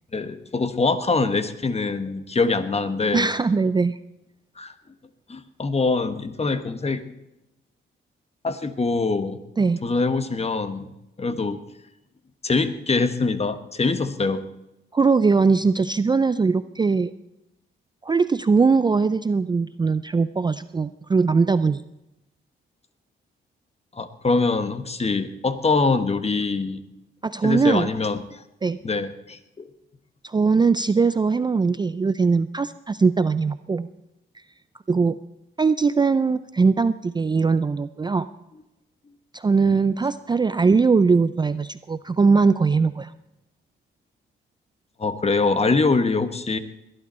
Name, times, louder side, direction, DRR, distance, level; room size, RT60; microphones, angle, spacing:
voice 1, 0.1-3.3 4.6-4.7 5.3-7.0 8.4-9.4 9.8-10.9 11.2-11.6 12.4-14.4 23.9-26.8 27.4-28.4 28.8-29.7 39.7-39.8 45.0-46.6, left 3 dB, 30° left, 11 dB, 1.2 m, -24 dB
voice 2, 3.1-4.0 9.6-9.8 14.9-17.1 18.0-21.8 27.2-27.9 28.6-28.8 30.2-33.9 34.9-35.2 35.6-38.3 39.3-43.1, right 4 dB, 20° right, 14 dB, 0.4 m, -20 dB
20.5 x 11.0 x 4.3 m, 0.90 s
cardioid pair, 70°, 21 cm